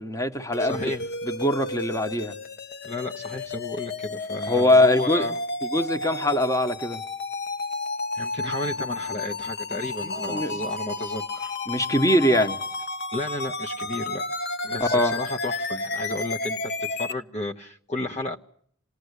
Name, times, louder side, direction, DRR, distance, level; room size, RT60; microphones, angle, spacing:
voice 1, 0.0-0.9 1.2-2.3 4.5-5.3 5.6-7.0 10.0-10.5 11.7-12.6 14.8-15.1, left 1 dB, 15° left, 1.3 m, -22 dB
sound 1, 0.5-17.1, left 2 dB, 50° left, 1.3 m, -32 dB
voice 2, 0.6-1.1 2.8-5.4 8.1-11.6 13.1-14.2 14.6-18.4, left 2 dB, 30° left, 1.0 m, -33 dB
27.0 x 19.5 x 8.2 m
head